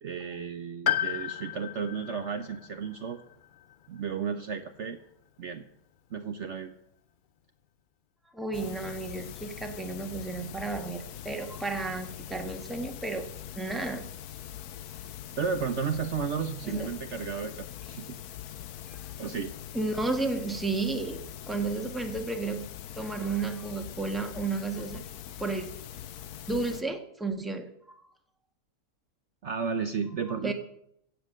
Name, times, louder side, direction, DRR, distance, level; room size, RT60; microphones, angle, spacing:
voice 1, 0.0-3.2 3.9-5.0 5.4-5.6 6.1-6.7 15.4-18.2 19.2-19.5 29.4-30.5, right 6 dB, 55° right, 8 dB, 1.0 m, -33 dB
Piano, 0.8-4.7 5.0-5.1 6.2-6.3, left 10 dB, 60° left, 0.5 m, -34 dB
voice 2, 8.3-13.3 13.5-14.1 16.6-16.9 18.9-19.0 19.7-22.7 23.0-25.0 25.4-25.7 26.5-28.0 30.3-30.5, right 3 dB, ahead, 5 dB, 1.3 m, -32 dB
sound 1, 8.5-26.8, left 11 dB, 85° left, 1.3 m, -42 dB
15.5 x 8.1 x 6.5 m, 0.73 s
omnidirectional pair, 1.6 m